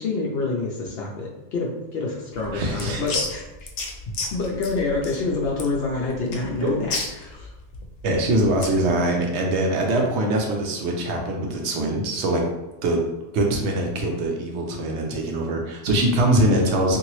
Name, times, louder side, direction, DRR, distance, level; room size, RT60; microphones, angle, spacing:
voice 1, 0.0-3.4 4.3-7.5, left 3 dB, 65° left, -3 dB, 0.7 m, -27 dB
sound 1, 2.3-8.8, left 3 dB, 90° left, 0.9 m, -33 dB
voice 2, 2.5-3.2 6.6-6.7 8.0-12.4 12.8-13.0 13.3-17.0, right 1 dB, 80° right, 1 dB, 0.9 m, -23 dB
2.8 x 2.6 x 3.0 m, 0.97 s
omnidirectional pair, 1.2 m